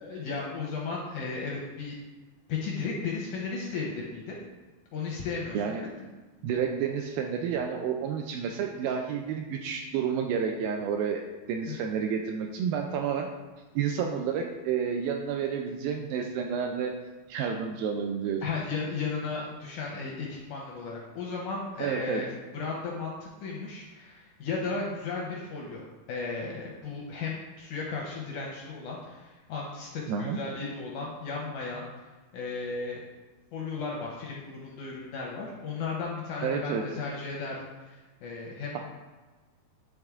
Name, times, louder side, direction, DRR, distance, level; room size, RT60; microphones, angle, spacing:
voice 1, 0.0-2.0 2.5-4.4 4.9-5.8 11.7-11.9 18.4-31.9 32.3-33.1 33.5-38.8, left 4 dB, 80° left, -2 dB, 1.8 m, -35 dB
voice 2, 5.5-5.9 6.4-11.2 11.5-13.3 13.7-17.0 17.3-18.4 21.8-22.2 30.1-30.4 36.4-36.9, right 7 dB, 80° right, 3 dB, 2.2 m, -30 dB
10.5 x 3.5 x 3.5 m, 1.3 s
omnidirectional pair, 4.5 m